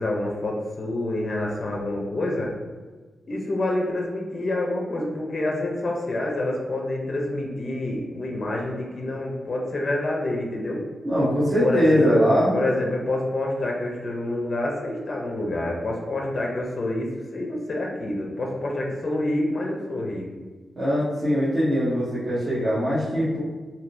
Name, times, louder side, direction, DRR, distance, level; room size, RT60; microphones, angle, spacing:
voice 1, 0.0-2.5 3.3-10.8 11.6-12.2 12.5-20.2, left 1 dB, 40° left, -1 dB, 0.5 m, -27 dB
voice 2, 11.0-12.6 20.8-23.4, equal, 35° right, -12 dB, 0.9 m, -21 dB
3.4 x 2.6 x 2.6 m, 1.4 s
wide cardioid pair, 140°, 0 cm